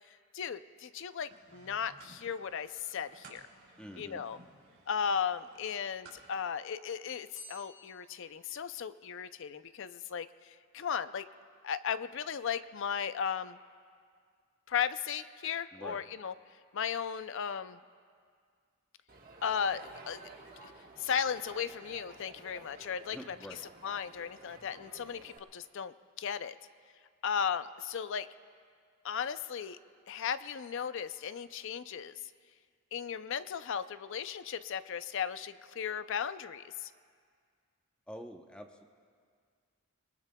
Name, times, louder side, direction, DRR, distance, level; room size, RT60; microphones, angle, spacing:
voice 1, 0.3-3.4 4.0-4.4 4.9-10.3 10.7-11.3 11.6-13.6 14.7-16.3 16.7-17.8 19.4-20.2 20.6-20.7 21.0-23.4 23.8-26.5 27.2-28.3 29.0-29.8 30.1-32.1 32.9-36.9, left 7 dB, 55° left, 13 dB, 0.4 m, -36 dB
sound 1, 1.3-6.5, right 3 dB, 60° right, 3.5 m, -58 dB
voice 2, 3.8-4.2 15.7-16.0 23.1-23.6 38.1-38.8, equal, 5° left, 3 dB, 0.8 m, -46 dB
sound 2, 7.3-9.3, left 3 dB, 30° left, 1.5 m, -53 dB
Crowd, 19.1-25.4, right 3 dB, 40° right, 1.4 m, -53 dB
26.0 x 21.0 x 2.3 m, 2.1 s
head